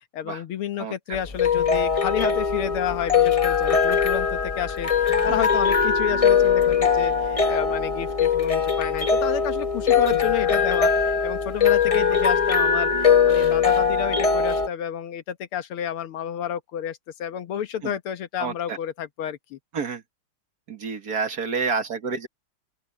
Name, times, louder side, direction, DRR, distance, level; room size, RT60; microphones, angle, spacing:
voice 1, 0.1-19.6, left 9 dB, 85° left, 2.0 m, -30 dB
sound 1, 1.1-14.7, left 6 dB, 40° left, 0.5 m, -21 dB
voice 2, 18.4-18.8 19.7-20.0 20.7-22.3, right 5 dB, 50° right, 2.0 m, -29 dB
open air
omnidirectional pair, 2.3 m